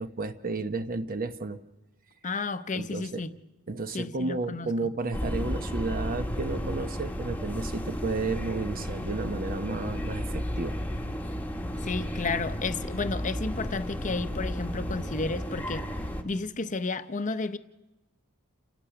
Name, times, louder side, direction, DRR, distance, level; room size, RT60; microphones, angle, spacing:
voice 1, 0.0-1.6 2.7-3.2 3.7-10.8, right 3 dB, 40° right, 0.9 m, -32 dB
voice 2, 2.2-3.3 3.9-4.7 11.8-15.9 16.2-17.6, left 3 dB, 35° left, 0.8 m, -32 dB
sound 1, 5.1-16.2, equal, 10° left, 1.2 m, -33 dB
29.0 x 16.5 x 6.0 m
head